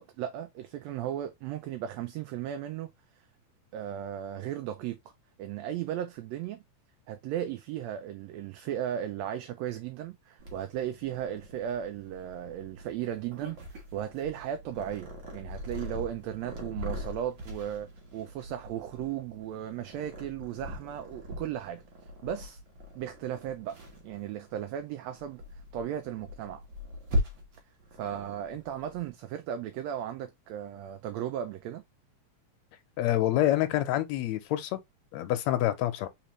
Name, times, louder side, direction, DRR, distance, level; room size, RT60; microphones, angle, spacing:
voice 1, 0.0-2.9 3.2-3.3 3.7-5.0 5.4-6.6 7.1-21.8 22.2-22.6 22.9-23.8 24.0-26.6 27.9-31.8, right 10 dB, 80° right, 1.7 m, -36 dB
Purr, 10.4-29.1, left 1 dB, 50° right, 1.8 m, -40 dB
voice 2, 33.0-34.8 35.1-36.1, left 13 dB, 80° left, 1.9 m, -27 dB
4.2 x 4.0 x 3.0 m
omnidirectional pair, 3.3 m